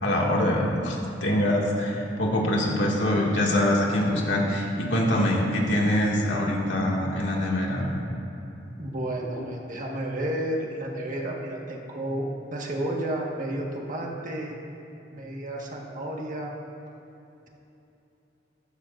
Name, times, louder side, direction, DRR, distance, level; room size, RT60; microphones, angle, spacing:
voice 1, 0.0-8.0, left 1 dB, 85° left, -3 dB, 2.1 m, -24 dB
voice 2, 8.8-14.6 15.1-16.5, right 1 dB, 45° right, -1 dB, 1.5 m, -31 dB
14.5 x 14.5 x 2.6 m, 2.9 s
head